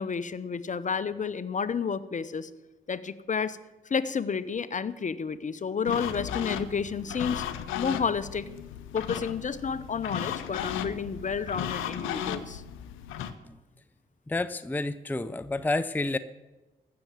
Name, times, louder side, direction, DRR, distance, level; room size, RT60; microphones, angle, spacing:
voice 1, 0.0-2.5 2.9-3.6 3.9-7.4 7.8-8.5 8.9-12.6, left 6 dB, 40° left, 16 dB, 0.7 m, -31 dB
sound 1, 5.9-13.3, left 9 dB, 85° left, 0.7 m, -35 dB
voice 2, 14.3-16.2, left 2 dB, 10° left, 15 dB, 0.5 m, -29 dB
15.0 x 6.7 x 7.5 m, 1.1 s
hypercardioid pair, 45°, 20 cm